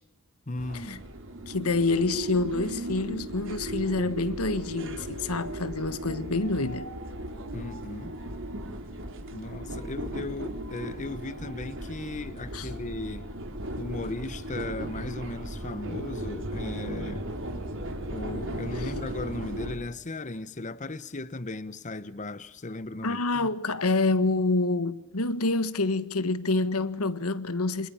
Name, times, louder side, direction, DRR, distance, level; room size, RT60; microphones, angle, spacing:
voice 1, 0.5-1.0 7.5-8.2 9.3-13.3 13.8-17.2 18.1-23.5, left 2 dB, 35° left, 0.9 m, -36 dB
sound 1, 0.6-19.7, right 1 dB, 60° right, 4.1 m, -36 dB
voice 2, 1.5-6.9 12.5-12.7 23.0-27.9, left 3 dB, 80° left, 1.4 m, -27 dB
28.5 x 26.5 x 7.1 m
head